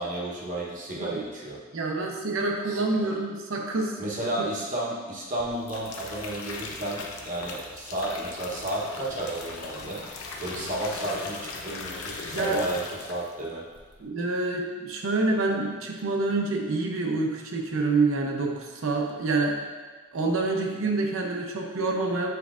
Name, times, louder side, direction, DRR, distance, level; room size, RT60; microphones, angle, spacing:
voice 1, 0.0-1.6 2.7-3.1 4.0-10.0 10.4-13.6, right 1 dB, 35° right, -4 dB, 1.0 m, -32 dB
voice 2, 1.7-4.1 4.4-4.5 12.3-12.6 14.0-19.6 20.1-22.3, right 3 dB, 65° right, 0 dB, 0.7 m, -27 dB
sound 1, 5.4-13.4 13.7-14.1, left 3 dB, 75° left, 0.7 m, -39 dB
8.1 x 4.6 x 2.5 m, 1.4 s
head